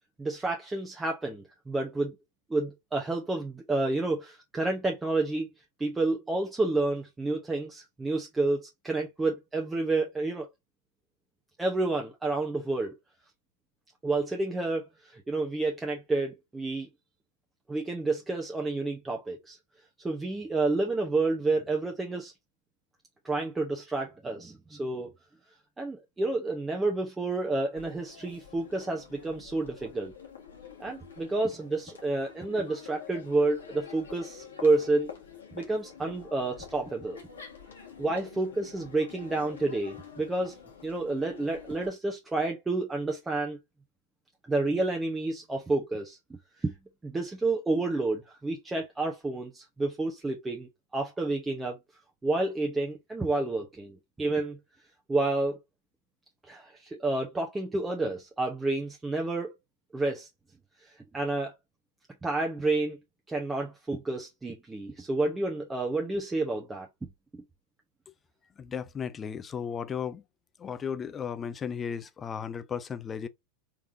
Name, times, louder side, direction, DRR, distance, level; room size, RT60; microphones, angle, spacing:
voice 1, 0.2-2.1 2.5-5.5 5.8-10.5 11.6-12.9 14.0-16.9 17.7-19.6 20.0-22.3 23.2-25.1 25.8-30.1 30.8-35.1 35.5-37.2 38.0-40.5 40.8-43.6 44.5-46.2 46.6-46.7 47.0-51.8 52.2-54.6 55.1-55.6 56.5-59.5 59.9-60.3 60.8-61.5 62.2-63.0 63.3-66.9, right 2 dB, 10° right, 0.9 m, -30 dB
Crowd, 27.8-41.9, left 7 dB, 70° left, 1.6 m, -47 dB
voice 2, 68.6-70.2 70.6-73.3, left 7 dB, 20° left, 0.6 m, -35 dB
4.7 x 3.5 x 2.7 m
figure-of-eight pair, 90°, 0 cm